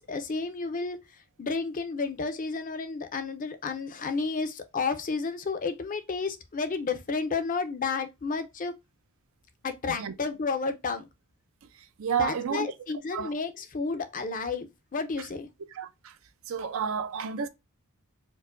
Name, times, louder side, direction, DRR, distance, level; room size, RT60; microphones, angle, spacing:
voice 1, 0.1-1.0 1.4-8.7 9.6-11.1 12.2-15.5, left 4 dB, 35° left, 0.5 m, -31 dB
voice 2, 11.7-12.7 13.1-13.3 15.7-16.2 16.5-17.5, right 6 dB, 65° right, 0.4 m, -31 dB
4.5 x 2.2 x 2.4 m
head